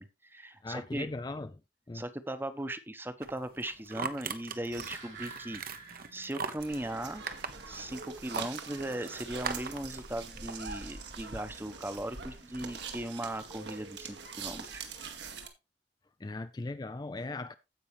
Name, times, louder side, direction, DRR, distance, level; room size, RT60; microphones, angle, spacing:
voice 1, 0.0-1.1 1.9-5.6 6.1-7.2 7.6-14.9, right 1 dB, 10° right, 0.9 m, -38 dB
voice 2, 0.6-1.5 1.9-2.0 16.2-17.5, left 2 dB, 25° left, 0.4 m, -38 dB
sound 1, 3.2-14.0, right 5 dB, 55° right, 1.0 m, -43 dB
sound 2, 4.5-6.8 7.1-7.2, right 5 dB, 90° right, 6.1 m, -49 dB
sound 3, 6.6-15.5, right 5 dB, 70° right, 1.9 m, -44 dB
16.0 x 5.5 x 3.2 m
head